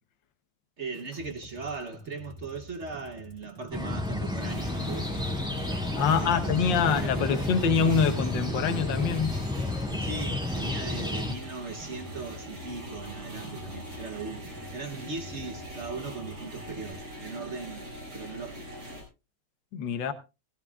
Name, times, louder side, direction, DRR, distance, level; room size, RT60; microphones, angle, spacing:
voice 1, 0.8-5.3 6.0-7.5 9.9-18.7, right 4 dB, 45° right, 1.1 m, -39 dB
sound 1, 0.9-16.9, left 1 dB, 40° left, 2.7 m, -48 dB
sound 2, 3.7-11.3, left 2 dB, ahead, 2.1 m, -31 dB
sound 3, 4.4-19.0, equal, 90° right, 7.2 m, -42 dB
voice 2, 5.9-9.4 9.9-10.0 19.7-20.1, left 6 dB, 75° left, 1.8 m, -25 dB
16.5 x 16.0 x 2.4 m
omnidirectional pair, 2.0 m